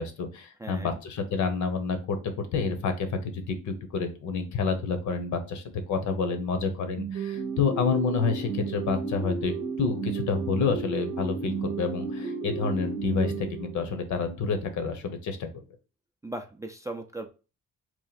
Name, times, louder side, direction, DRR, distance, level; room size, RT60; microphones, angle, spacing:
voice 1, 0.0-9.5 9.8-15.6, left 5 dB, 70° left, 7 dB, 0.9 m, -29 dB
voice 2, 0.6-1.0 16.2-17.3, right 2 dB, 10° right, 4 dB, 0.4 m, -37 dB
sound 1, 7.0-14.1, right 5 dB, 85° right, 0.8 m, -33 dB
3.0 x 2.5 x 4.0 m, 0.32 s
cardioid pair, 90°, 30 cm